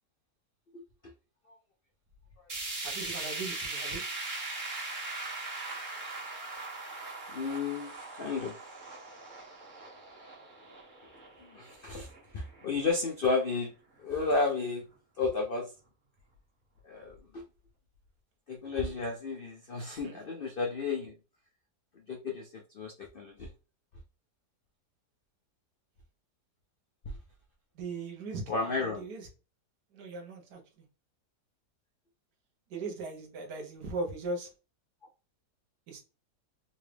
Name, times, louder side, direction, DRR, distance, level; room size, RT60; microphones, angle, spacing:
sound 1, 2.5-12.7 13.1-13.2 13.5-13.6 14.5-14.6, right 2 dB, 35° right, 1.0 m, -40 dB
voice 1, 2.8-4.0 20.0-20.2 27.7-28.5 29.0-29.3 29.9-30.9 32.7-34.5 35.9-36.0, right 3 dB, 75° right, 1.5 m, -38 dB
voice 2, 7.3-7.9 8.2-8.6 11.4-13.7 14.0-14.9 15.2-15.7 16.8-17.4 18.5-21.1 21.9-23.5 27.1-27.2 28.5-29.1, left 4 dB, 65° left, 0.5 m, -32 dB
3.9 x 2.4 x 3.3 m
omnidirectional pair, 1.8 m